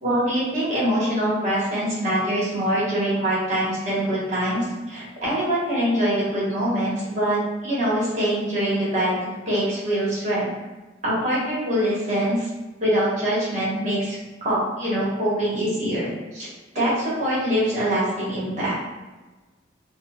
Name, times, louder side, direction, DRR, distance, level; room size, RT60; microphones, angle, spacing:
voice 1, 0.0-10.5 11.0-12.5 12.8-14.2 14.4-16.5 16.7-18.7, equal, 40° right, -8 dB, 1.2 m, -24 dB
4.2 x 2.1 x 2.3 m, 1.2 s
head